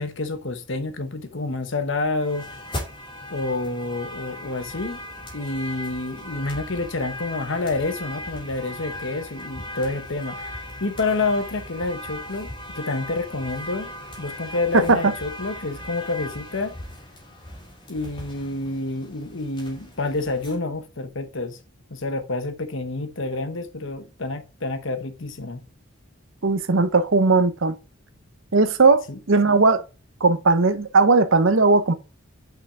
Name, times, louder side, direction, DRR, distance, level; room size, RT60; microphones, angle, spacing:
voice 1, 0.0-2.5 3.3-5.0 5.3-10.4 10.8-13.9 14.2-16.7 17.9-21.6 21.9-25.6 29.1-29.2, left 3 dB, 60° left, 1.0 m, -28 dB
sound 1, 2.2-20.5, left 1 dB, 20° left, 2.9 m, -38 dB
voice 2, 26.4-27.7 28.5-29.8 30.2-31.9, right 3 dB, 65° right, 0.8 m, -18 dB
5.9 x 5.8 x 4.8 m
head